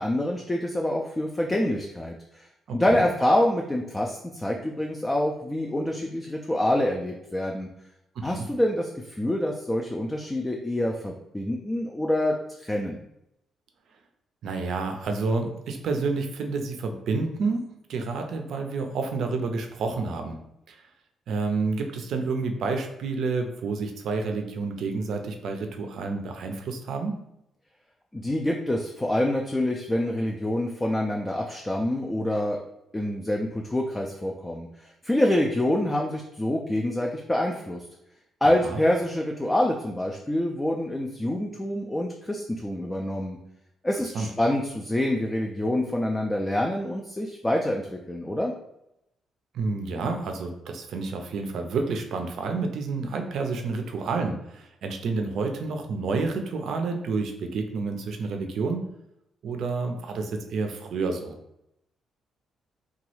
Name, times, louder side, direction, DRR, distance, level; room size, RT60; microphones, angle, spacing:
voice 1, 0.0-7.7 8.2-13.0 28.1-32.6 32.9-37.8 38.4-43.4 43.8-48.5, left 1 dB, 15° left, 0 dB, 0.3 m, -26 dB
voice 2, 2.7-3.0 8.2-8.5 14.4-17.6 17.9-20.4 20.7-20.8 21.3-27.1 38.6-38.8 44.1-44.3 49.5-58.9 59.4-61.4, right 4 dB, 70° right, 4 dB, 0.4 m, -29 dB
2.9 x 2.3 x 3.1 m, 0.83 s
cardioid pair, 90°, 0 cm